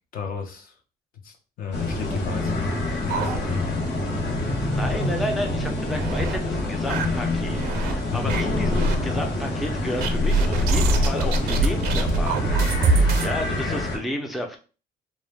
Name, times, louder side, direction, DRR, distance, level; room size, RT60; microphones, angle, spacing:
voice 1, 0.1-0.7 1.2-3.8 4.9-5.1 8.1-8.3 13.7-13.9, left 6 dB, 60° left, 0.6 m, -33 dB
sound 1, 1.7-14.0, left 2 dB, 80° left, 1.1 m, -27 dB
sound 2, 2.4-4.0 4.3-4.4 4.8-4.9 5.5-6.4 6.9-7.9 8.3-9.0 10.0-13.3, right 2 dB, 65° right, 0.5 m, -24 dB
voice 2, 4.7-12.5 12.8-14.6, left 1 dB, ahead, 0.4 m, -32 dB
2.3 x 2.0 x 3.1 m
cardioid pair, 110°, 17 cm